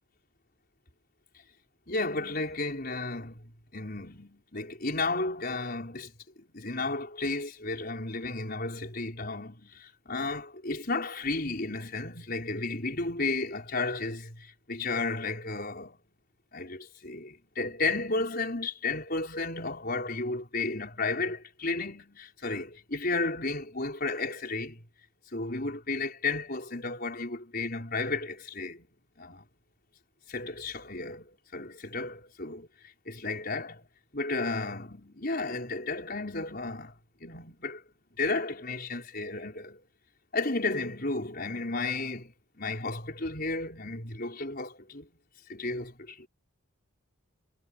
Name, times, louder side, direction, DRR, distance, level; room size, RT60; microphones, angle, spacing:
voice 1, 1.9-6.1 6.5-16.0 16.5-24.8 25.3-28.9 29.2-29.4 30.3-32.7 33.1-33.9 34.1-37.8 38.2-39.8 40.3-45.1 45.5-46.3, left 3 dB, 45° left, 5.5 m, -33 dB
head